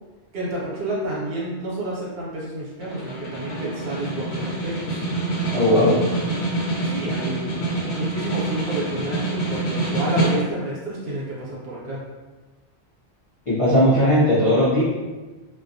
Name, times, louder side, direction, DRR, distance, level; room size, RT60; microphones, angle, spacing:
voice 1, 0.3-5.0 6.8-7.5 7.9-12.0, right 1 dB, 65° right, -6 dB, 1.0 m, -30 dB
Snare drum, 2.8-10.8, right 2 dB, 80° left, 0.9 m, -26 dB
voice 2, 5.5-6.0 13.5-14.8, equal, 40° left, -10 dB, 0.5 m, -17 dB
2.3 x 2.1 x 2.6 m, 1.2 s
omnidirectional pair, 1.1 m